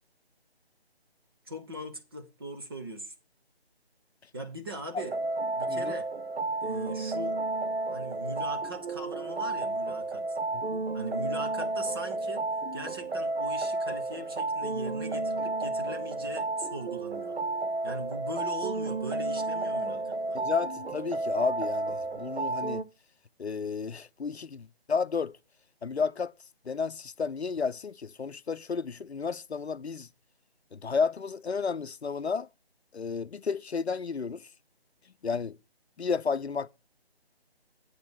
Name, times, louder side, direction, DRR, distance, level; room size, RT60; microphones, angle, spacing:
voice 1, 1.4-3.1 4.3-5.1 5.4-6.1 6.6-7.4 7.9-10.4 10.9-12.4 12.7-17.4 17.8-20.4, right 1 dB, 25° right, 0.9 m, -40 dB
sound 1, 5.0-22.8, right 2 dB, 75° right, 0.9 m, -32 dB
voice 2, 10.5-10.8 19.7-20.0 20.3-22.8 23.4-25.4 25.8-26.3 26.7-30.1 30.7-32.5 32.9-34.5 35.2-35.6 36.0-36.7, left 5 dB, 85° left, 0.6 m, -32 dB
8.3 x 5.1 x 6.2 m
figure-of-eight pair, 155°, 32 cm